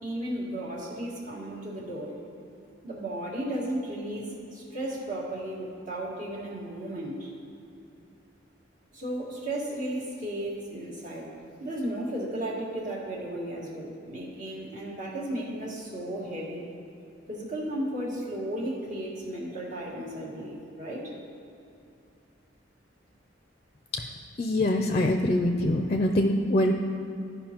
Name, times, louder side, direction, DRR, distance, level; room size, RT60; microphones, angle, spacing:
voice 1, 0.0-2.1 2.8-7.3 8.9-11.3 11.6-16.6 17.3-21.1, right 1 dB, 45° right, -4 dB, 1.7 m, -34 dB
voice 2, 24.4-26.7, left 1 dB, 35° left, 4 dB, 0.4 m, -24 dB
14.5 x 5.4 x 2.9 m, 2.7 s
head